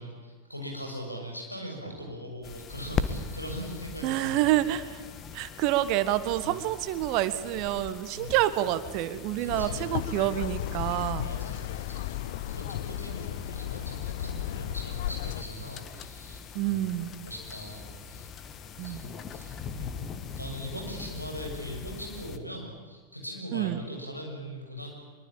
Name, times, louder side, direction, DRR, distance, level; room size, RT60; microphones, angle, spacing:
voice 1, 0.0-4.6 6.4-6.6 8.1-8.4 9.4-9.9 11.1-12.1 12.5-16.9 17.2-18.3 18.8-20.1 20.4-24.9, equal, 90° left, 1 dB, 6.7 m, -40 dB
sound 1, 2.4-22.4, left 6 dB, 30° left, 1.8 m, -41 dB
voice 2, 4.0-5.0 5.3-11.3 16.5-17.1 18.8-19.0 23.5-23.8, right 14 dB, 45° right, 13 dB, 1.5 m, -28 dB
sound 2, 9.5-15.4, left 12 dB, 55° left, 0.9 m, -34 dB
24.0 x 23.5 x 8.8 m, 1.5 s
figure-of-eight pair, 90°, 0 cm